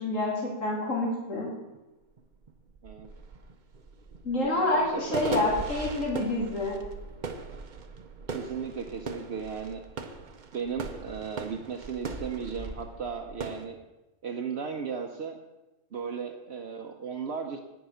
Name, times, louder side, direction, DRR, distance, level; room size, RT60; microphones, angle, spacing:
voice 1, 0.0-1.5 4.2-6.8, left 2 dB, 75° left, -4 dB, 3.0 m, -28 dB
sound 1, 1.7-1.8 2.2-13.7, right 4 dB, 45° right, 0.8 m, -39 dB
voice 2, 4.4-5.6 8.3-9.8 10.5-13.8 14.2-15.4 15.9-17.6, right 6 dB, 60° right, 3 dB, 1.0 m, -36 dB
8.7 x 7.2 x 6.3 m, 1.0 s
omnidirectional pair, 1.3 m